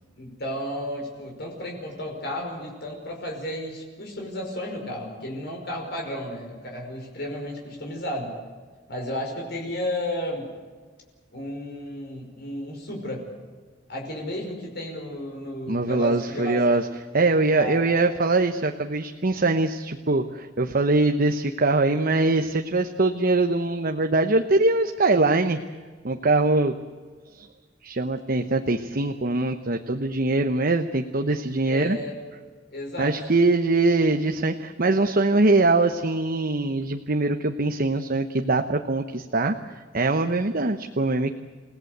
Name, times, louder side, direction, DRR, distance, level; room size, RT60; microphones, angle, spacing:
voice 1, 0.2-8.3 8.9-10.5 11.3-13.3 13.9-16.6 17.5-17.8 31.7-32.2 32.7-33.2, left 1 dB, 60° left, 0 dB, 5.4 m, -33 dB
voice 2, 15.7-16.9 17.1-25.6 26.0-26.7 27.3-27.5 27.8-32.0 33.0-41.3, right 2 dB, 50° right, 5 dB, 1.0 m, -22 dB
29.0 x 17.5 x 8.1 m, 1.5 s
head